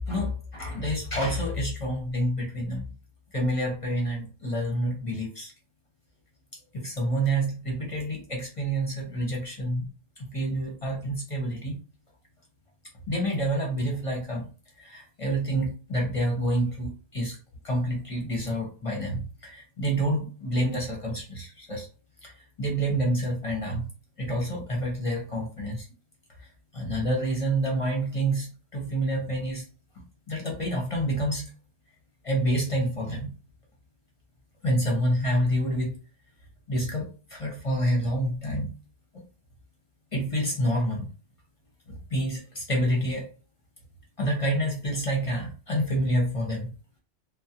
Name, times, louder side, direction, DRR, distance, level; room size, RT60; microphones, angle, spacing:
voice 1, 0.1-2.9 3.3-5.5 6.7-9.9 10.2-11.8 13.1-14.4 14.8-17.4 17.6-21.9 22.2-23.9 24.2-25.9 26.4-26.5 26.7-29.6 30.0-31.5 32.2-33.3 34.6-36.0 36.7-38.7 39.1-39.2 40.1-41.1 41.9-43.3 44.2-46.7, right 1 dB, 35° left, 0 dB, 0.6 m, -28 dB
2.4 x 2.0 x 2.7 m, 0.35 s
omnidirectional pair, 1.2 m